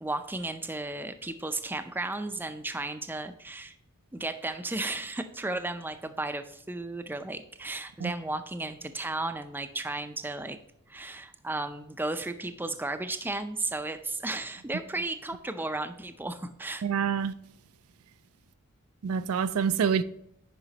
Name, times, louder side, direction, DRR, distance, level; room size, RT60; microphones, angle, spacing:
voice 1, 0.0-3.7 4.1-10.6 10.9-16.8, right 2 dB, 10° right, 0.4 m, -34 dB
voice 2, 16.8-17.3 19.0-20.0, right 7 dB, 70° right, 0.4 m, -26 dB
9.7 x 5.1 x 2.9 m
head